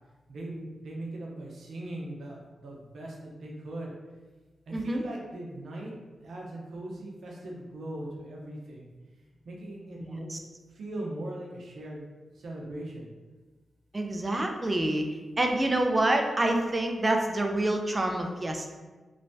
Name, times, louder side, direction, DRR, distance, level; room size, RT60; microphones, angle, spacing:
voice 1, 0.3-3.9 4.7-8.9 9.4-10.3 10.7-12.1 12.3-13.1, right 1 dB, 80° right, -2 dB, 0.6 m, -39 dB
voice 2, 4.7-5.0 10.3-10.4 13.9-15.0 15.4-18.7, right 1 dB, 30° right, 3 dB, 0.4 m, -27 dB
3.1 x 2.1 x 2.6 m, 1.3 s
cardioid pair, 60°, 0 cm